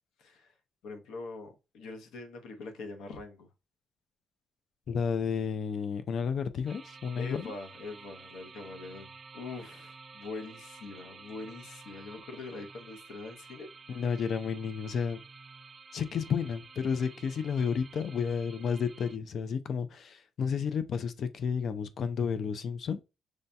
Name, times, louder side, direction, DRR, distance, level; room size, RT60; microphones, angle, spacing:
voice 1, 0.2-0.6 0.8-3.5 7.1-13.7, left 3 dB, 85° left, 0.8 m, -43 dB
voice 2, 4.9-7.4 13.9-15.2 15.9-23.0, left 6 dB, 55° left, 0.4 m, -31 dB
sound 1, 6.7-19.2, right 4 dB, 30° right, 0.3 m, -51 dB
6.2 x 2.7 x 2.2 m
cardioid pair, 115°, 0 cm